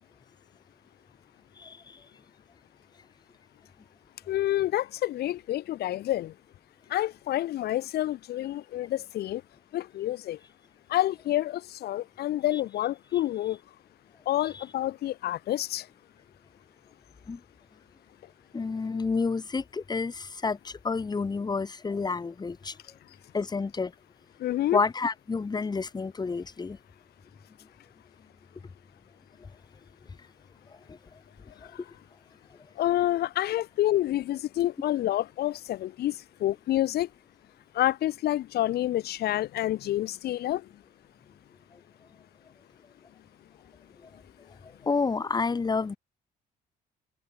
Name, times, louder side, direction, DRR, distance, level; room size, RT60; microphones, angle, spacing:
voice 1, 1.6-2.0 12.5-12.6 14.5-14.6 17.3-17.4 18.5-22.7 23.3-23.9 24.7-26.8 30.9-31.0 44.8-46.0, left 4 dB, 25° left, 4.1 m, -29 dB
voice 2, 4.3-6.3 6.9-9.4 9.7-10.4 10.9-13.6 14.2-15.9 24.4-24.8 32.8-37.1 37.7-40.7, left 14 dB, 70° left, 6.6 m, -28 dB
cardioid pair, 110°, 17 cm